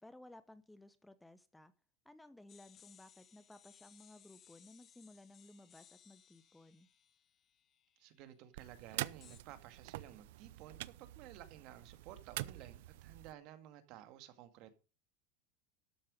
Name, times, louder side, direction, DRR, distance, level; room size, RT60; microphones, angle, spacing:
voice 1, 0.0-1.7 2.0-6.9, left 1 dB, 5° left, 0.8 m, -58 dB
sound 1, 2.5-8.2 9.2-9.4, left 9 dB, 30° left, 1.2 m, -64 dB
voice 2, 8.0-14.7, right 12 dB, 55° right, 1.9 m, -54 dB
sound 2, 8.5-13.3, right 17 dB, 75° right, 0.6 m, -46 dB
12.5 x 7.8 x 5.1 m
supercardioid pair, 130°, 0 cm